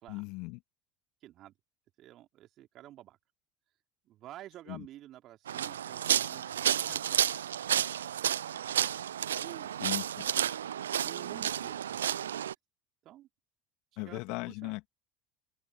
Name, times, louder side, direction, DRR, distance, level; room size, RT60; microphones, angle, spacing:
voice 1, 0.1-0.6 4.7-4.9 6.9-7.0 8.7-8.9 9.8-10.3 14.0-14.9, left 26 dB, 60° left, 2.5 m, -38 dB
voice 2, 1.2-1.5 2.0-3.2 4.0-7.4 9.4-9.8 10.3-10.5 11.0-12.3 13.0-13.3 13.9-14.7, right 13 dB, 50° right, 3.1 m, -51 dB
sound 1, 5.5-12.5, right 10 dB, 80° right, 0.5 m, -31 dB
open air
figure-of-eight pair, 70°, 0 cm